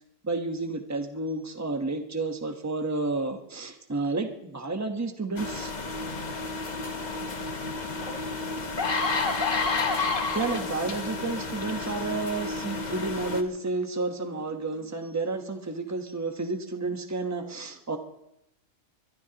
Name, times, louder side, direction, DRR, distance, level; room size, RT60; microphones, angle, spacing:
voice 1, 0.2-5.7 10.3-18.0, right 3 dB, 15° right, 5 dB, 1.0 m, -31 dB
sound 1, 5.4-13.4, left 3 dB, 35° left, 1.1 m, -34 dB
sound 2, 8.0-8.1 8.6-10.9 11.6-11.8, left 4 dB, 80° left, 2.0 m, -27 dB
23.5 x 21.0 x 2.9 m, 0.86 s
omnidirectional pair, 1.3 m